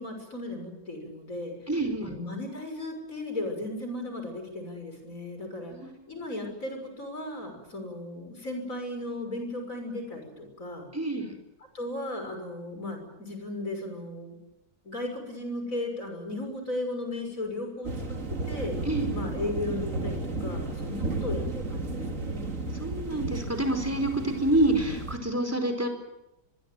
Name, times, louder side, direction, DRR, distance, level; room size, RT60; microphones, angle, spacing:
voice 1, 0.0-1.5 2.0-5.8 6.1-10.9 11.7-14.4 14.8-18.2 18.4-18.8 19.1-22.4, left 1 dB, 45° left, 5 dB, 6.6 m, -36 dB
voice 2, 1.7-2.1 5.7-6.0 10.9-11.4 18.8-19.2 22.7-25.9, right 1 dB, 10° right, 5 dB, 4.8 m, -27 dB
sound 1, 17.8-25.2, right 2 dB, 45° right, 2.7 m, -33 dB
23.5 x 23.0 x 9.3 m, 0.92 s
omnidirectional pair, 1.9 m